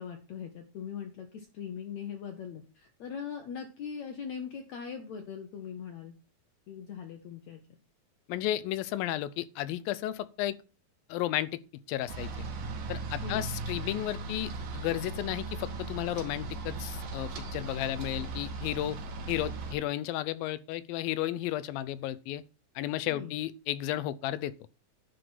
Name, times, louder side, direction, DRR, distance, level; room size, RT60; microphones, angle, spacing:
voice 1, 0.0-6.1 6.7-7.6 13.2-13.5 23.1-23.3, left 7 dB, 65° left, 1.9 m, -40 dB
voice 2, 8.3-10.6 11.1-11.6 11.9-12.5 12.9-19.0 19.3-22.4 22.8-24.6, left 14 dB, 85° left, 2.4 m, -33 dB
sound 1, 12.1-19.7, right 3 dB, 80° right, 3.4 m, -38 dB
10.0 x 5.1 x 6.0 m
omnidirectional pair, 4.0 m